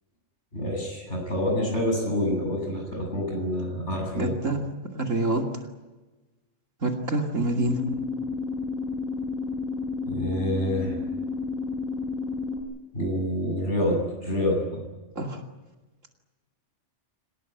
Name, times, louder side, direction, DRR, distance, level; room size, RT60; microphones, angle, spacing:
voice 1, 0.5-4.3 10.0-11.0 12.9-14.8, left 1 dB, 65° left, 1 dB, 8.6 m, -27 dB
voice 2, 4.2-4.6 4.9-5.5 6.8-7.8 15.1-15.4, right 2 dB, 85° right, 3 dB, 2.9 m, -26 dB
sound 1, 7.6-12.6, left 4 dB, ahead, 6.1 m, -31 dB
26.0 x 19.5 x 9.1 m, 1.2 s
omnidirectional pair, 1.3 m